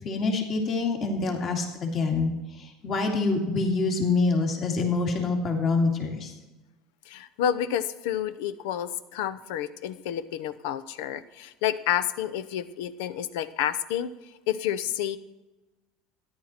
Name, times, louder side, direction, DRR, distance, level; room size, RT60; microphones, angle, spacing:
voice 1, 0.0-6.3, left 3 dB, 40° left, 2 dB, 2.4 m, -26 dB
voice 2, 7.1-14.1 14.5-15.2, left 10 dB, 80° left, 14 dB, 0.7 m, -29 dB
13.5 x 10.5 x 4.4 m, 1.1 s
supercardioid pair, 130°, 0 cm